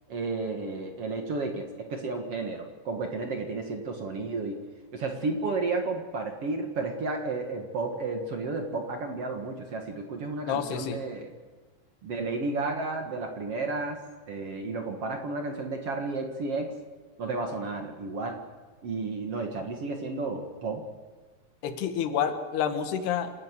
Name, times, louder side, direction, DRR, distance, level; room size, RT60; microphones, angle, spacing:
voice 1, 0.1-4.6 4.9-11.3 12.0-14.0 14.3-16.7 17.2-18.4 18.8-20.8, right 3 dB, 50° right, 4 dB, 2.1 m, -32 dB
voice 2, 10.5-11.0 21.6-23.3, left 8 dB, 90° left, 8 dB, 3.6 m, -29 dB
27.5 x 13.5 x 8.3 m, 1.4 s
omnidirectional pair, 4.5 m